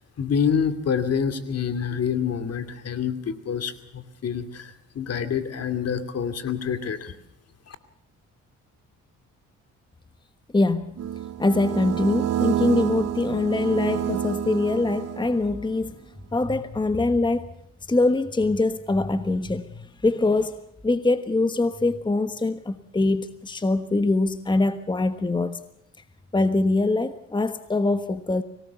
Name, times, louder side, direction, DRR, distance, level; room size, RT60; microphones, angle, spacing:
voice 1, 0.2-7.1 7.7-7.8, left 7 dB, 55° left, 2.6 m, -27 dB
voice 2, 10.5-10.9 11.4-16.0 16.3-17.5 17.9-20.6 20.8-25.6 26.3-28.4, left 2 dB, 15° left, 1.2 m, -23 dB
sound 1, 11.0-15.6, right 11 dB, 55° right, 0.9 m, -28 dB
25.0 x 18.5 x 6.9 m
cardioid pair, 90°, 30 cm